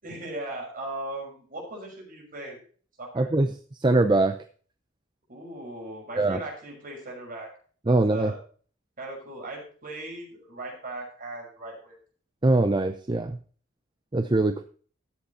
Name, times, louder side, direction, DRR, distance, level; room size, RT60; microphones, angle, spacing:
voice 1, 0.0-2.6 3.0-3.3 5.3-7.5 7.8-8.4 9.0-12.0, right 2 dB, 45° right, -1 dB, 5.9 m, -38 dB
voice 2, 3.2-3.5 3.8-4.4 6.2-6.4 7.9-8.3 12.4-13.4 14.1-14.6, right 2 dB, 25° right, 9 dB, 0.6 m, -22 dB
13.0 x 8.1 x 4.2 m, 0.42 s
head